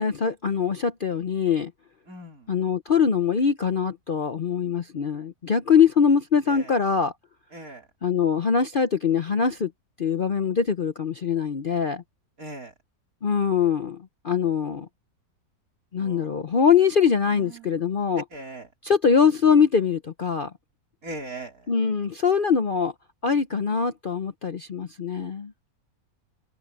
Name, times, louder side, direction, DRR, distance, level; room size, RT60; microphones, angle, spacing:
voice 1, 0.0-1.7 2.5-7.1 8.0-9.7 10.0-12.0 13.2-14.9 15.9-18.2 18.8-20.5 21.7-22.9 23.2-25.5, left 6 dB, 45° left, 0.8 m, -23 dB
voice 2, 2.1-2.5 6.5-6.8 7.5-7.9 12.4-12.7 16.0-16.5 17.3-17.7 18.3-18.7 21.0-21.7, right 2 dB, 60° right, 4.7 m, -40 dB
omnidirectional pair, 1.7 m